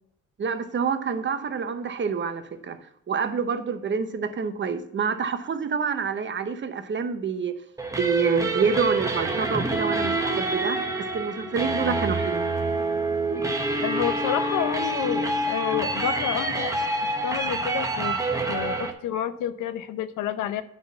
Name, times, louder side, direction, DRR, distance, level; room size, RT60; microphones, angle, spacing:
voice 1, 0.4-2.8 3.1-7.6 7.9-10.8 11.1-12.5, right 6 dB, 40° right, 9 dB, 1.0 m, -27 dB
sound 1, 7.8-18.9, right 2 dB, 10° right, 1.2 m, -27 dB
voice 2, 13.8-16.7 17.0-18.2 18.5-20.6, left 10 dB, 90° left, 12 dB, 0.7 m, -29 dB
10.0 x 4.0 x 7.0 m, 0.81 s
cardioid pair, 90°, 30 cm